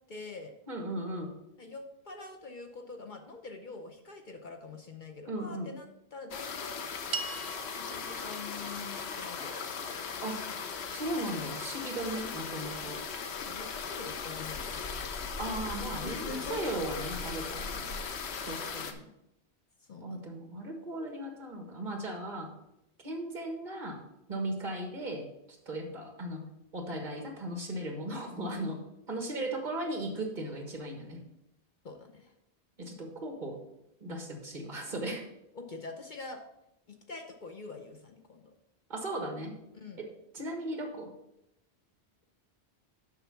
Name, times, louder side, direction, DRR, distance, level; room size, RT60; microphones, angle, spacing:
voice 1, 0.1-0.5 1.6-6.9 7.8-9.8 13.4-14.8 16.0-16.6 18.0-18.4 19.9-20.2 31.8-32.3 35.5-36.4 36.9-38.5 39.7-40.0, left 3 dB, 50° left, 3 dB, 0.9 m, -45 dB
voice 2, 0.7-1.3 5.2-5.7 10.2-10.5 10.9-13.0 15.4-18.0 18.5-19.0 20.0-22.5 23.0-24.0 24.3-26.5 26.7-28.8 29.1-31.2 32.8-33.6 34.0-35.3 38.9-39.6 40.0-41.1, right 1 dB, 45° right, 3 dB, 1.6 m, -37 dB
sound 1, 6.3-18.9, left 5 dB, 85° left, 1.1 m, -38 dB
sound 2, 7.1-11.6, right 4 dB, 65° right, 0.9 m, -44 dB
7.4 x 5.7 x 5.8 m, 0.84 s
omnidirectional pair, 1.1 m